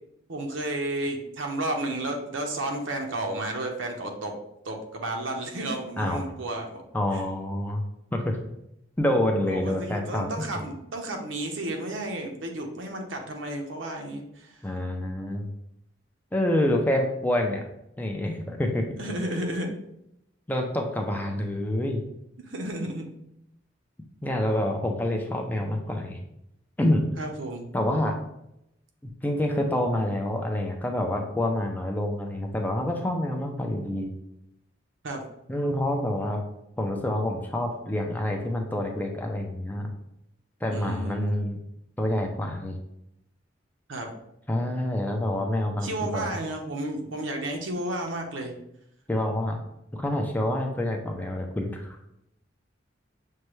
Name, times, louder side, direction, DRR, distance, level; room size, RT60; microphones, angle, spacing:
voice 1, 0.3-4.4 4.6-6.8 7.1-7.2 9.5-14.6 19.0-19.7 22.4-23.1 27.2-27.7 35.0-35.2 40.7-41.4 43.9-44.1 45.8-48.5, right 1 dB, 85° right, 3 dB, 0.8 m, -32 dB
voice 2, 6.9-7.8 8.1-8.4 9.0-10.3 14.6-15.5 16.3-17.6 18.0-19.0 20.5-22.0 24.2-26.2 26.8-27.1 27.7-28.2 29.2-34.1 35.5-36.4 36.8-39.9 40.6-41.6 42.0-42.8 44.5-46.4 49.1-49.6 49.9-52.0, left 1 dB, 10° left, 2 dB, 0.4 m, -27 dB
6.5 x 2.2 x 3.1 m, 0.81 s
head